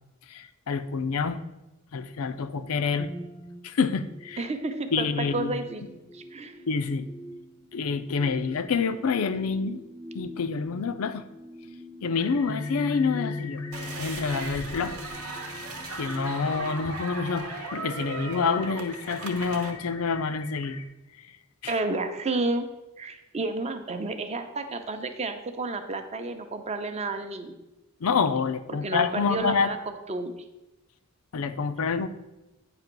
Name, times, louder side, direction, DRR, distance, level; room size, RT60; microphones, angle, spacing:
voice 1, 0.3-1.4 1.9-3.1 3.6-4.4 4.9-5.5 6.7-7.1 7.7-9.8 10.1-11.2 12.0-15.0 15.2-15.4 16.0-20.8 21.6-21.8 28.0-29.7 31.3-32.1, left 5 dB, 70° left, 12 dB, 0.5 m, -27 dB
sound 1, 3.0-16.9, left 2 dB, 10° left, 0.6 m, -41 dB
voice 2, 4.4-5.8 6.1-6.5 21.7-22.7 23.0-27.5 28.7-29.8 30.1-30.3, right 2 dB, 30° right, 7 dB, 0.6 m, -31 dB
sound 2, 12.1-20.9, left 6 dB, 90° left, 1.0 m, -45 dB
sound 3, 13.7-19.7, right 4 dB, 75° right, 0.9 m, -38 dB
8.8 x 3.0 x 5.9 m, 1.0 s
head